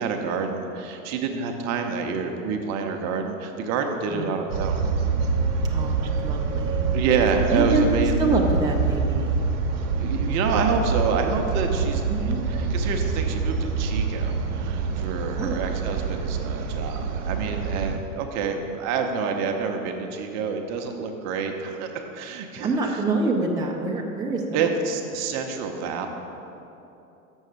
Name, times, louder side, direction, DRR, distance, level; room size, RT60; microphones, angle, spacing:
voice 1, 0.0-4.8 6.9-8.1 10.0-12.0 12.5-23.0 24.5-26.1, right 5 dB, 40° right, 4 dB, 0.8 m, -28 dB
sound 1, 4.5-18.0, right 5 dB, 65° right, 1.0 m, -26 dB
voice 2, 5.6-6.9 7.5-7.8 8.2-9.4 12.1-12.4 15.4-15.6 22.6-24.7, right 3 dB, 10° right, -1 dB, 0.7 m, -26 dB
6.4 x 6.2 x 6.6 m, 2.9 s
figure-of-eight pair, 85°, 42 cm